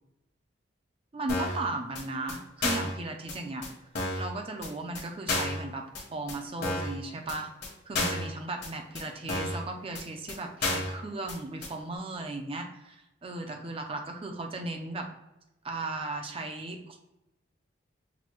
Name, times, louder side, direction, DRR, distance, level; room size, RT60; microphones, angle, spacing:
voice 1, 1.1-3.7 4.2-5.9 6.1-7.5 7.9-15.1 15.6-17.0, right 2 dB, 30° right, 4 dB, 0.5 m, -36 dB
sound 1, 1.3-1.6 1.9-2.0 2.3-2.4 2.6-2.9 3.3-3.4 3.6-3.7 3.9-4.3 4.6-4.7 4.9-5.0 5.3-5.6 5.9-6.0 6.3-6.4 6.6-6.9 7.3-7.4 7.6-7.7 7.9-8.3 8.6-8.7 8.9-9.0 9.3-9.6 9.9-10.0 10.3-10.4 10.6-10.9 11.3-11.4 11.6-11.7, left 2 dB, 60° left, 1.2 m, -31 dB
5.9 x 2.2 x 3.1 m, 0.91 s
head